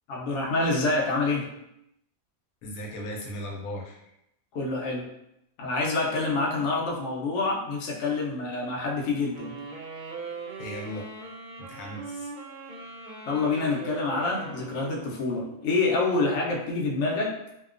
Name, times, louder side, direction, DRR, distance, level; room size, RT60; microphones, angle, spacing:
voice 1, 0.1-1.5 4.5-5.1 5.6-9.6 13.3-17.3, left 3 dB, 70° left, -2 dB, 0.9 m, -27 dB
voice 2, 2.6-4.1 10.6-11.1 11.6-12.3, equal, 90° left, -1 dB, 1.0 m, -37 dB
sound 1, 9.3-15.7, right 4 dB, 65° right, 0.4 m, -40 dB
2.7 x 2.1 x 2.4 m, 0.82 s
omnidirectional pair, 1.4 m